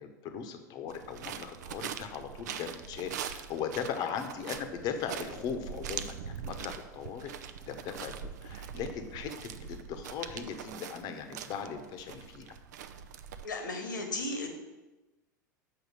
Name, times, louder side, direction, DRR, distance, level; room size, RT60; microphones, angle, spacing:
voice 1, 0.0-7.3 7.6-12.6, left 7 dB, 40° left, 7 dB, 1.0 m, -38 dB
sound 1, 0.9-13.5, right 8 dB, 60° right, 0.5 m, -42 dB
voice 2, 13.4-14.5, left 2 dB, 75° left, 3 dB, 1.5 m, -35 dB
6.4 x 4.6 x 6.7 m, 1.1 s
figure-of-eight pair, 85°, 10 cm